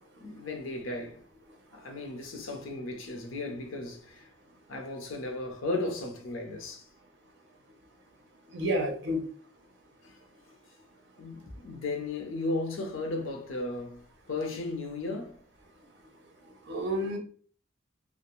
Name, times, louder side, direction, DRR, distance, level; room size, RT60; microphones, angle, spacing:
voice 1, 0.2-1.2 1.7-4.3 4.7-6.8 11.2-15.4, left 2 dB, 75° left, 0.6 m, -35 dB
voice 2, 8.5-9.2 16.7-17.2, equal, 55° right, 0.7 m, -29 dB
2.4 x 2.0 x 3.0 m
head